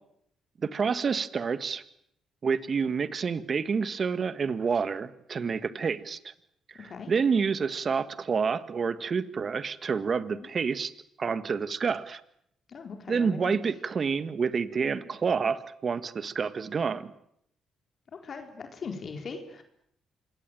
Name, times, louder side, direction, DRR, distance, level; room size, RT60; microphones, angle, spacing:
voice 1, 0.6-1.8 2.4-6.3 6.7-10.9 11.2-12.2 13.1-17.1, right 5 dB, 45° right, 13 dB, 1.7 m, -28 dB
voice 2, 12.7-13.6 18.2-19.6, left 5 dB, 50° left, 5 dB, 4.4 m, -39 dB
27.0 x 22.0 x 9.2 m, 0.73 s
cardioid pair, 90°, 0 cm